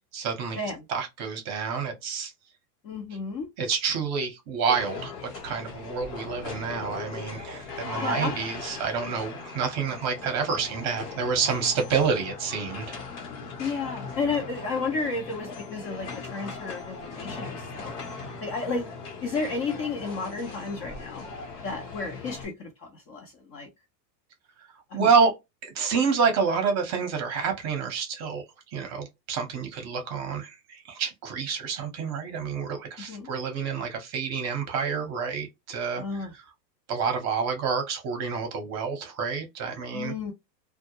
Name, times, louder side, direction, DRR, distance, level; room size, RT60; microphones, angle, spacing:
voice 1, 0.1-0.6 0.9-2.3 3.6-13.0 24.9-25.3 25.6-28.4 28.7-36.3 36.9-40.1, right 5 dB, 35° right, 0.8 m, -28 dB
voice 2, 2.8-3.5 8.0-8.3 13.6-18.1 18.4-18.9 19.2-21.2 21.6-23.7 24.9-25.1 33.1-33.3 36.0-36.3 39.9-40.3, left 4 dB, 30° left, 0.5 m, -32 dB
sound 1, 4.7-22.5, left 4 dB, 65° left, 1.0 m, -39 dB
2.2 x 2.0 x 2.8 m
hypercardioid pair, 125°, 50 cm